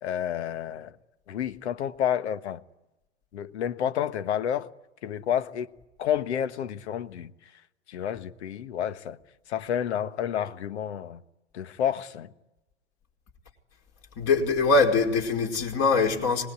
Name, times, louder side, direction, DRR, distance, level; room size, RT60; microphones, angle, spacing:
voice 1, 0.0-0.9 1.3-2.6 3.3-4.7 5.0-5.7 6.0-7.3 7.9-9.2 9.5-11.2 11.5-12.3, left 9 dB, 65° left, 1.4 m, -30 dB
voice 2, 14.2-16.5, left 3 dB, 40° left, 5.2 m, -23 dB
25.5 x 20.5 x 9.8 m
hypercardioid pair, 100°, 36 cm